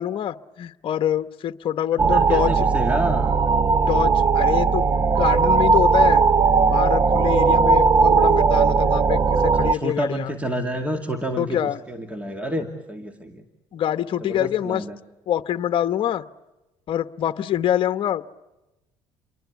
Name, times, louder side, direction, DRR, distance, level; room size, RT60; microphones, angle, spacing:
voice 1, 0.0-2.6 3.7-6.2 6.7-10.3 11.4-11.8 13.7-14.8 15.3-16.2 16.9-18.4, left 10 dB, 50° left, 11 dB, 1.1 m, -25 dB
voice 2, 1.9-3.4 9.6-13.4 14.2-15.0, equal, 10° right, 6 dB, 2.4 m, -29 dB
sound 1, 2.0-9.7, right 5 dB, 30° right, 0.9 m, -18 dB
29.0 x 23.5 x 8.2 m, 0.99 s
cardioid pair, 100°, 11 cm